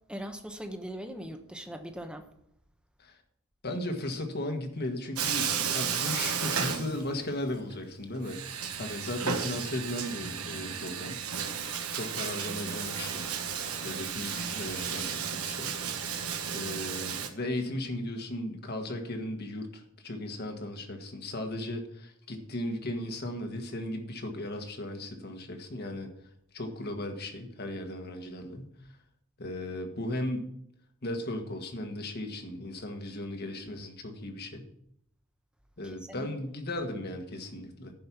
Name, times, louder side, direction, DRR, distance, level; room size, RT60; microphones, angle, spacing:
voice 1, 0.1-2.3 35.8-36.3, equal, 5° right, 6 dB, 0.9 m, -40 dB
voice 2, 3.6-11.2 11.9-13.4 13.8-15.8 16.5-26.1 26.5-28.7 29.4-30.5 31.0-34.7 35.8-37.9, left 1 dB, 45° left, 5 dB, 1.5 m, -36 dB
Bathtub (filling or washing), 5.2-7.4 7.7-7.8 8.2-17.3, right 7 dB, 85° right, 1.2 m, -33 dB
sound 1, 12.8-15.5, left 2 dB, 85° left, 2.9 m, -49 dB
10.5 x 5.4 x 7.0 m, 0.73 s
head